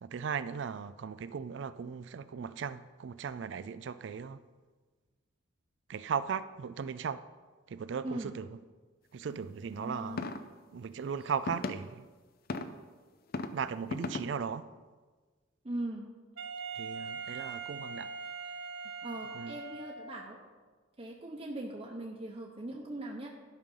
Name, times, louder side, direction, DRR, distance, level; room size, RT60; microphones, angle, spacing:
voice 1, 0.0-4.4 5.9-7.2 7.7-8.6 9.1-10.2 10.7-12.1 13.5-14.6 16.8-18.1 19.3-19.6, right 6 dB, 65° right, 0.4 m, -37 dB
voice 2, 9.8-10.4 15.6-16.1 19.0-20.4 21.0-23.3, right 1 dB, 30° right, 0.8 m, -40 dB
sound 1, 10.2-10.4 11.5-11.7 12.5-12.7 13.3-13.5 13.9-14.2, left 3 dB, 50° left, 0.5 m, -34 dB
Wind instrument woodwind instrument, 16.4-20.3, right 5 dB, 85° right, 1.3 m, -41 dB
11.5 x 5.4 x 5.4 m
head